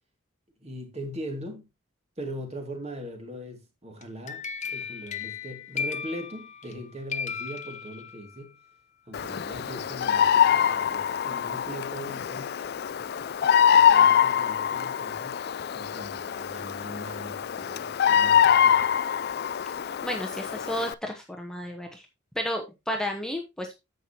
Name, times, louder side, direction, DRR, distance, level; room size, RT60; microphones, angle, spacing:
voice 1, 0.6-1.7 2.2-8.6 9.1-12.6 13.7-15.5 15.7-18.9, equal, 35° right, 2.4 m, -40 dB
sound 1, 4.0-6.8 7.1-8.4, left 6 dB, 35° left, 0.8 m, -35 dB
Bird vocalization bird call bird song, 9.1-20.9, left 8 dB, 55° left, 0.4 m, -24 dB
voice 2, 19.8-22.0 22.3-23.7, left 1 dB, 5° left, 1.0 m, -32 dB
10.0 x 7.7 x 2.9 m
head